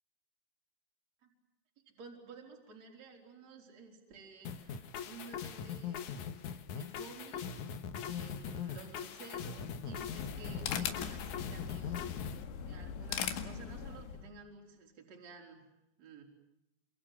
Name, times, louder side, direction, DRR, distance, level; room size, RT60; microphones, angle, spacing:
voice 1, 2.0-6.3 6.7-12.1 12.6-15.6 16.0-16.2, right 4 dB, 35° right, 2 dB, 5.4 m, -53 dB
sound 1, 4.4-12.4, left 7 dB, 60° left, 2.2 m, -41 dB
sound 2, 9.8-14.3, left 8 dB, 80° left, 4.3 m, -40 dB
28.0 x 26.5 x 7.7 m, 0.90 s
omnidirectional pair, 5.3 m